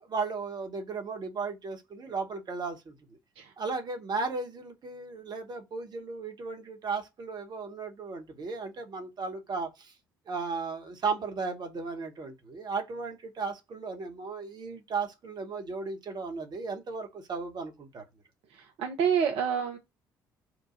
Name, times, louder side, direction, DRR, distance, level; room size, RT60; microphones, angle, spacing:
voice 1, 0.0-3.0 3.6-9.9 10.3-18.0, right 4 dB, 45° right, 1.2 m, -35 dB
voice 2, 18.5-19.8, right 7 dB, 65° right, 0.7 m, -28 dB
4.7 x 2.3 x 2.5 m
hypercardioid pair, 50°, 10 cm